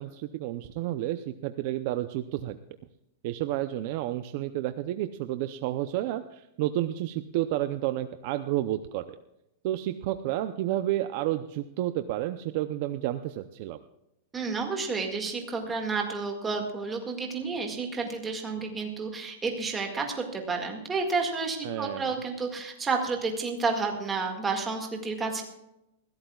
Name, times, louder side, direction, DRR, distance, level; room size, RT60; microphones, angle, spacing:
voice 1, 0.0-2.6 3.2-9.2 9.6-13.8 21.6-22.1, right 14 dB, 40° right, 10 dB, 0.6 m, -31 dB
voice 2, 14.3-25.4, right 4 dB, 10° right, 2 dB, 1.9 m, -30 dB
20.5 x 16.0 x 2.4 m, 0.87 s
supercardioid pair, 180°, 0 cm